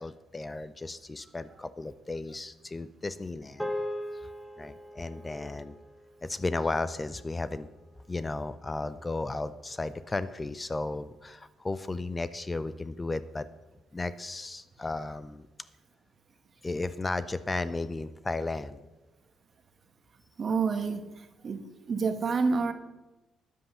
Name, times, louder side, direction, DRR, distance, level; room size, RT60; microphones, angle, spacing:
voice 1, 0.0-3.7 4.1-4.3 4.6-5.8 6.2-7.7 8.1-13.5 13.9-15.5 16.6-18.9, left 2 dB, 20° left, 15 dB, 0.5 m, -34 dB
sound 1, 3.6-8.1, left 1 dB, ahead, 1.1 m, -40 dB
voice 2, 20.4-21.6 21.9-22.7, right 4 dB, 45° right, 9 dB, 1.2 m, -28 dB
10.5 x 7.6 x 6.8 m, 1.1 s
cardioid pair, 90°, 0 cm